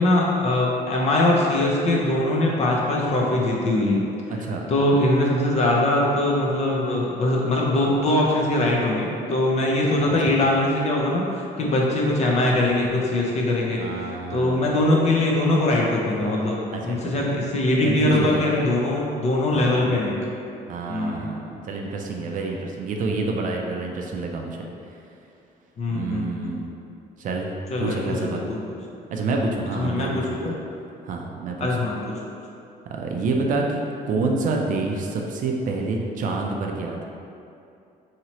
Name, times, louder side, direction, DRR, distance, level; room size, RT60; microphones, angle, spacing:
voice 1, 0.0-4.0 4.7-14.0 14.3-20.2 20.9-21.3 25.8-26.6 27.7-28.6 29.7-30.5 31.6-32.1, left 1 dB, 40° left, -2 dB, 0.6 m, -22 dB
voice 2, 4.3-4.7 10.3-10.4 13.8-14.8 16.7-17.3 17.8-18.5 19.5-19.9 20.7-25.0 25.9-26.7 27.2-27.5 27.8-28.5 29.1-30.5 31.0-31.7 32.9-33.8 34.1-37.1, right 3 dB, 50° right, 1 dB, 0.4 m, -28 dB
2.9 x 2.8 x 2.9 m, 2.6 s
cardioid pair, 110°, 17 cm